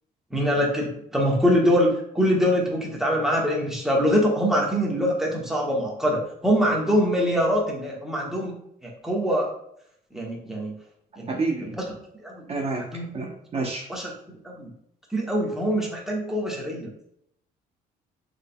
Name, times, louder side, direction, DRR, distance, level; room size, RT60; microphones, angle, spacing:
voice 1, 0.3-8.6 8.8-9.5 10.1-10.7 11.2-11.3 12.2-12.5 12.9-13.1 13.9-14.7 15.1-16.9, equal, ahead, -3 dB, 1.4 m, -24 dB
voice 2, 11.3-11.7 12.5-13.9, right 3 dB, 35° right, -1 dB, 0.8 m, -29 dB
6.6 x 3.6 x 2.2 m, 0.73 s
cardioid pair, 110°, 17 cm